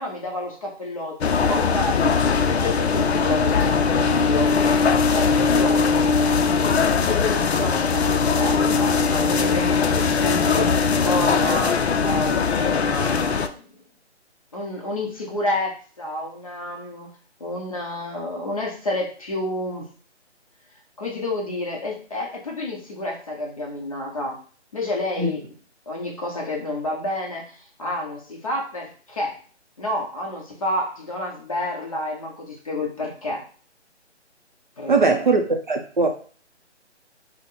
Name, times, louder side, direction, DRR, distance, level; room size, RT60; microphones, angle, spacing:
voice 1, 0.0-4.6 5.1-5.8 6.9-13.6 14.5-17.1 17.4-19.9 21.0-24.4 24.7-25.5 25.9-29.4 29.8-33.5 34.8-35.2, left 1 dB, 30° left, 0.8 m, -29 dB
sound 1, 1.2-13.5, left 5 dB, 65° left, 0.5 m, -20 dB
voice 2, 34.9-35.4 35.7-36.1, right 3 dB, 45° right, 0.5 m, -19 dB
4.2 x 2.1 x 3.9 m
hypercardioid pair, 165°, 35 cm